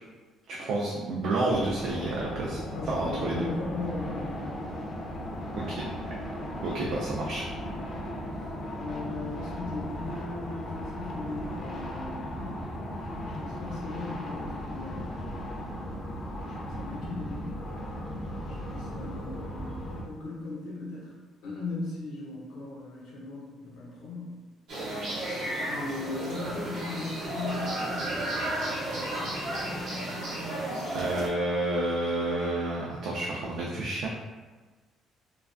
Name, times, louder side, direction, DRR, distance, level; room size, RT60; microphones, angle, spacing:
voice 1, 0.5-2.6 2.9-3.5 5.6-5.9 6.6-7.5 30.9-34.1, right 2 dB, 70° right, -4 dB, 0.3 m, -30 dB
sound 1, 1.5-20.0, equal, 45° left, 0.5 m, -36 dB
voice 2, 2.7-4.5 6.6-7.0 7.7-12.6 13.2-15.2 16.6-17.6 18.5-21.1 21.4-24.4 25.7-28.4, left 3 dB, 90° left, -5 dB, 0.7 m, -38 dB
sound 2, 24.7-31.3, right 1 dB, 85° right, 0.8 m, -33 dB
2.3 x 2.3 x 2.4 m, 1.3 s
cardioid pair, 115°, 0 cm